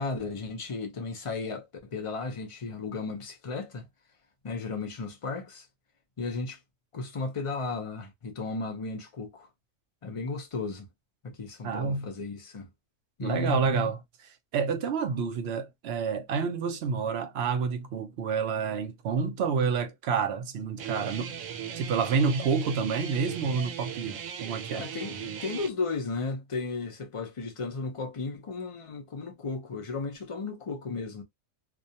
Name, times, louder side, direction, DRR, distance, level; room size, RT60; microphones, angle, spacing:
voice 1, 0.0-3.9 4.4-5.7 6.2-6.6 6.9-9.5 10.0-10.9 11.2-12.7 13.2-13.9 24.7-31.2, left 3 dB, 50° left, 0.4 m, -34 dB
voice 2, 11.6-12.1 13.2-14.0 14.5-21.4 21.8-24.9, right 5 dB, 65° right, 0.7 m, -28 dB
Guitar, 20.8-25.7, right 8 dB, 90° right, 1.0 m, -38 dB
2.4 x 2.2 x 2.7 m
omnidirectional pair, 1.4 m